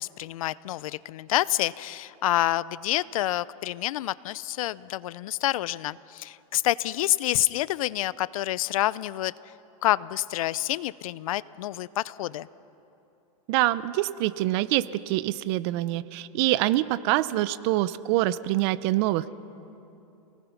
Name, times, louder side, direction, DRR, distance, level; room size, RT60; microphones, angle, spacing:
voice 1, 0.0-9.3 9.8-12.5, left 15 dB, 65° left, 19 dB, 0.6 m, -28 dB
voice 2, 13.5-19.3, right 16 dB, 45° right, 16 dB, 0.7 m, -25 dB
28.5 x 19.0 x 5.9 m, 2.8 s
supercardioid pair, 145°, 19 cm